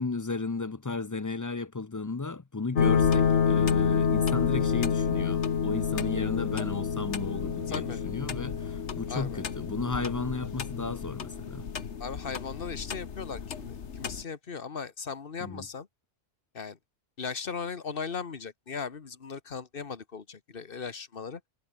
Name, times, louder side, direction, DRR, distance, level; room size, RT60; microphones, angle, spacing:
voice 1, 0.0-11.7 15.4-15.7, left 3 dB, 25° left, 0.4 m, -34 dB
sound 1, 2.8-14.2, left 6 dB, 85° left, 1.6 m, -29 dB
voice 2, 7.7-8.0 9.1-9.4 12.0-15.9 16.5-16.8 17.2-21.4, left 5 dB, 55° left, 1.5 m, -38 dB
omnidirectional pair, 1.1 m